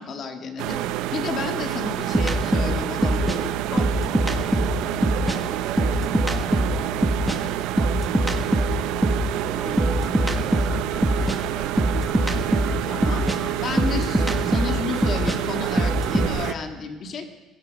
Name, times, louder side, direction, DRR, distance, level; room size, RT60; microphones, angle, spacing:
voice 1, 0.0-3.9 9.5-9.9 12.9-13.3 13.6-17.3, left 4 dB, 45° left, 5 dB, 1.7 m, -32 dB
sound 1, 0.6-16.5, right 14 dB, 85° right, 0.5 m, -28 dB
sound 2, 2.1-5.4 5.7-9.3 9.8-16.3, equal, 5° right, 1.3 m, -23 dB
voice 2, 2.9-8.7 9.0-9.8 10.1-11.6, right 6 dB, 55° right, 1 dB, 4.1 m, -40 dB
17.0 x 15.5 x 5.2 m, 1.2 s
cardioid pair, 135°, 0 cm